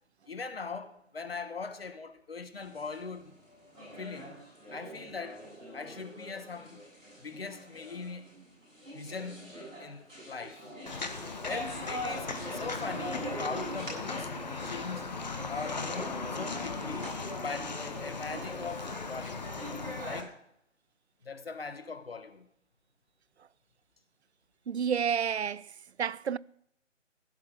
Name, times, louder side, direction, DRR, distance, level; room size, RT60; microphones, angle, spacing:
voice 1, 0.3-3.4 4.0-4.4 4.7-5.4 5.7-6.8 7.2-8.3 8.9-10.6 11.4-14.4 14.6-17.2 17.4-19.5 20.0-20.4 21.2-22.5, left 4 dB, 50° left, 1.3 m, -41 dB
sound 1, 2.5-20.2, equal, 85° right, 7.0 m, -43 dB
Walk footsteps, 10.9-20.2, left 4 dB, 35° left, 1.0 m, -38 dB
voice 2, 24.7-26.4, right 7 dB, 60° right, 0.5 m, -30 dB
15.5 x 5.7 x 8.5 m
figure-of-eight pair, 155°, 38 cm